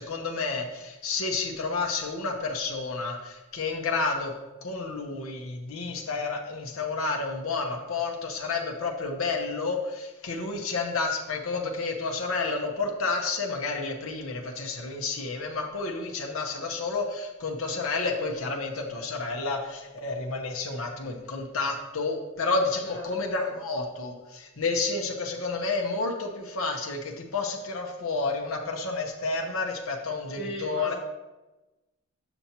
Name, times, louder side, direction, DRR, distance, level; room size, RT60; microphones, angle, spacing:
voice 1, 0.0-4.3 4.6-30.9, left 3 dB, 80° left, 1 dB, 0.9 m, -30 dB
voice 2, 30.3-31.0, left 1 dB, 50° left, -4 dB, 2.4 m, -38 dB
7.0 x 6.8 x 2.9 m, 1.1 s
head